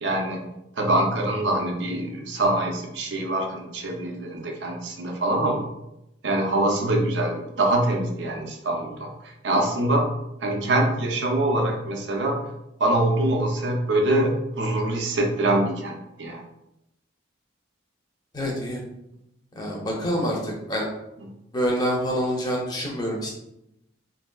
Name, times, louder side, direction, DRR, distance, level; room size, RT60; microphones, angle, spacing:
voice 1, 0.0-0.5 0.8-5.6 6.2-9.1 9.4-10.1 10.4-12.4 12.8-16.4, right 1 dB, 65° right, 2 dB, 0.6 m, -24 dB
voice 2, 18.3-18.8 19.6-20.9 21.5-23.3, equal, 20° left, -2 dB, 0.7 m, -26 dB
4.1 x 2.7 x 2.3 m, 0.85 s
head